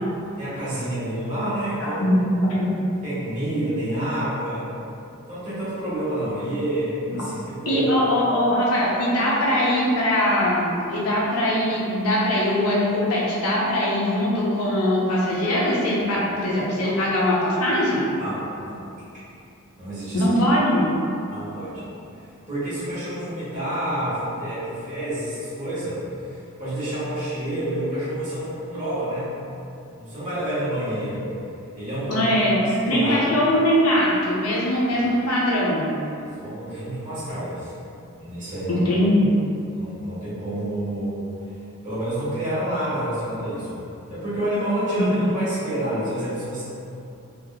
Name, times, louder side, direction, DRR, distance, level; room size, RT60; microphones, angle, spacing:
voice 1, 0.2-2.0 3.0-4.7 5.3-7.9 16.8-16.9 18.2-18.8 19.8-20.3 21.3-21.8 22.1-29.3 30.0-31.3 31.7-33.3 34.9-35.2 36.1-37.7 38.2-38.9 39.7-41.2 41.8-46.6, right 1 dB, 35° right, -12 dB, 1.4 m, -29 dB
voice 2, 1.8-2.7 7.1-7.2 7.7-18.1 20.1-20.9 32.1-35.9 38.7-39.3, left 1 dB, 85° left, -6 dB, 0.7 m, -21 dB
3.4 x 2.8 x 2.4 m, 2.7 s
head